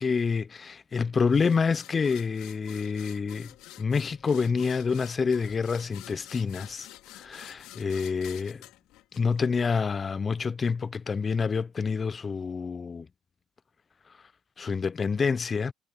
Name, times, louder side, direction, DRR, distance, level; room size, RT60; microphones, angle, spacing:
voice 1, 0.0-6.9 7.1-8.6 9.1-13.1 14.6-15.7, left 5 dB, 30° left, 0.5 m, -27 dB
sound 1, 1.3-9.8, left 17 dB, 75° left, 4.8 m, -49 dB
supercardioid pair, 95°, 0 cm